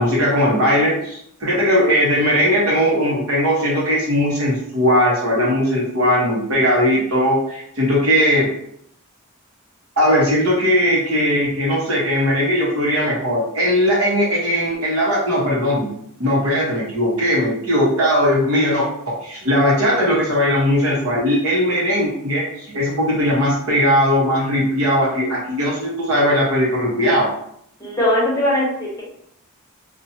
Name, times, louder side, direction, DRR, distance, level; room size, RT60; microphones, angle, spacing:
voice 1, 0.0-8.5 10.0-15.9 16.2-27.3, equal, 70° right, -5 dB, 1.1 m, -18 dB
voice 2, 27.8-29.0, left 1 dB, 15° left, -5 dB, 0.8 m, -20 dB
2.7 x 2.4 x 2.7 m, 0.71 s
head